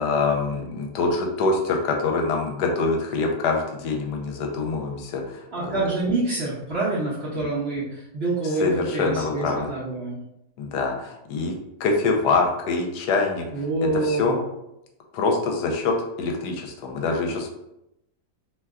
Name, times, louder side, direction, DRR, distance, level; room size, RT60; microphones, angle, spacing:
voice 1, 0.0-5.8 7.4-7.5 8.6-9.7 10.6-11.5 11.8-13.4 14.0-14.4 15.1-17.5, left 3 dB, 80° left, 2 dB, 1.1 m, -25 dB
voice 2, 5.5-10.2 13.5-14.4, right 3 dB, 50° right, -7 dB, 0.8 m, -26 dB
2.9 x 2.2 x 3.5 m, 0.84 s
omnidirectional pair, 1.8 m